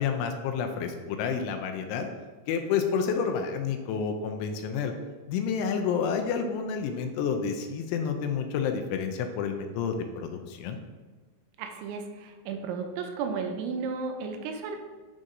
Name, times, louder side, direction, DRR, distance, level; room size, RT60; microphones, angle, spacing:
voice 1, 0.0-2.1 2.5-4.9 5.3-10.8, left 6 dB, 85° left, 5 dB, 2.9 m, -29 dB
voice 2, 11.6-14.8, right 5 dB, 85° right, 5 dB, 2.9 m, -34 dB
10.5 x 3.7 x 2.6 m, 1.3 s
omnidirectional pair, 5.3 m